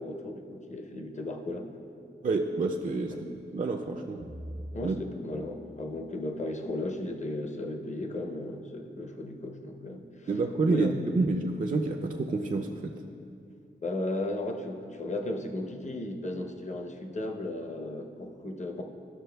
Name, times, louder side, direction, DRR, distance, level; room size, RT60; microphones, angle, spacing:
voice 1, 0.0-1.7 4.7-10.4 10.7-11.0 13.8-18.8, left 2 dB, 35° left, 3 dB, 0.7 m, -35 dB
voice 2, 2.2-3.1 3.5-4.2 4.8-5.0 10.3-12.9, right 3 dB, 40° right, 3 dB, 0.4 m, -28 dB
sound 1, 4.2-6.9, equal, 85° right, 0.8 m, -45 dB
12.5 x 6.1 x 2.2 m, 2.5 s
wide cardioid pair, 70°, 20 cm